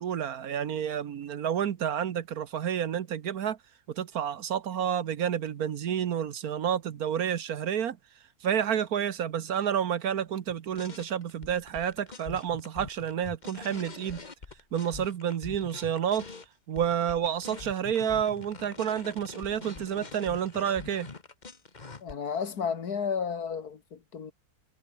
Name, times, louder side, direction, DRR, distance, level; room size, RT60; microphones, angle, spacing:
voice 1, 0.0-3.6 3.9-8.0 8.4-14.2 14.7-16.3 16.7-21.1, right 9 dB, 65° right, 1.5 m, -30 dB
sound 1, 10.5-16.5 16.7-22.1, left 4 dB, 30° left, 1.5 m, -44 dB
voice 2, 22.0-24.3, left 6 dB, 70° left, 2.2 m, -32 dB
omnidirectional pair, 1.7 m